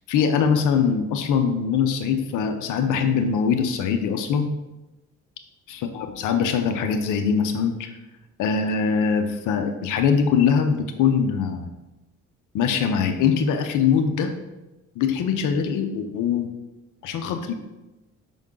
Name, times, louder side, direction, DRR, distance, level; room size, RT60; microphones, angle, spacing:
voice 1, 0.1-4.5 5.7-7.9 8.4-11.7 12.5-14.3 15.0-16.5 17.0-17.5, left 6 dB, 85° left, 7 dB, 0.8 m, -22 dB
5.5 x 5.4 x 3.8 m, 1.0 s
cardioid pair, 90°, 30 cm